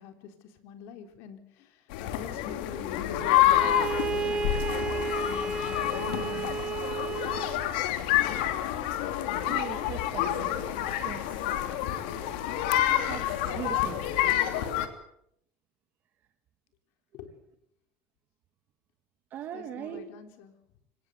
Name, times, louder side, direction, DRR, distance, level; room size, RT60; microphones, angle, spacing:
voice 1, 0.0-6.6 17.1-17.3 19.5-20.5, left 7 dB, 65° left, 7 dB, 3.8 m, -46 dB
sound 1, 1.9-14.9, left 12 dB, 85° left, 2.8 m, -28 dB
Bowed string instrument, 3.5-7.7, right 5 dB, 20° right, 1.7 m, -33 dB
voice 2, 9.4-10.6 11.0-11.3 13.1-14.0 19.3-20.0, right 9 dB, 40° right, 7 dB, 1.8 m, -39 dB
25.0 x 18.5 x 7.9 m, 0.73 s
cardioid pair, 145°, 5 cm